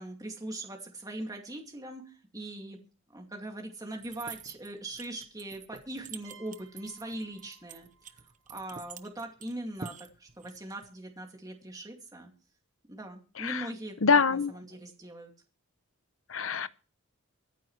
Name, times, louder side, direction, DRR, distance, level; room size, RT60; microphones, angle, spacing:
voice 1, 0.0-2.8 3.1-8.2 8.5-12.3 12.9-14.0 14.3-15.3, right 1 dB, 15° right, 2.4 m, -41 dB
sound 1, 4.0-10.9, right 6 dB, 35° right, 0.8 m, -47 dB
sound 2, 6.2-9.9, right 5 dB, 85° right, 5.6 m, -60 dB
voice 2, 14.0-14.5 16.3-16.7, left 5 dB, 70° left, 0.8 m, -25 dB
24.0 x 9.3 x 3.2 m
head